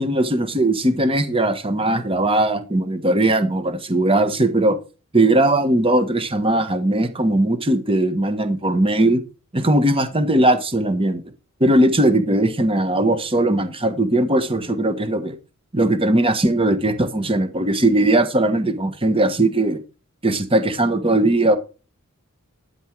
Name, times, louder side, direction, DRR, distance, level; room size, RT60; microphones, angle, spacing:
voice 1, 0.0-4.8 5.1-9.2 9.5-11.2 11.6-15.4 15.7-19.8 20.2-21.6, right 1 dB, 25° right, 10 dB, 1.3 m, -19 dB
12.5 x 7.3 x 4.7 m, 0.32 s
head